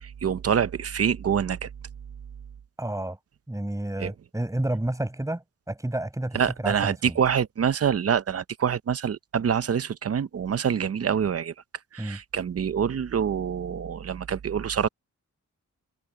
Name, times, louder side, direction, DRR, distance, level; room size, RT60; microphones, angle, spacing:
voice 1, 0.0-1.7 4.0-4.1 6.3-11.5 11.9-14.9, right 7 dB, 50° right, 0.6 m, -26 dB
voice 2, 2.8-3.2 3.5-7.2 12.0-12.2, right 1 dB, 10° right, 6.0 m, -30 dB
wide cardioid pair, 145°, 31 cm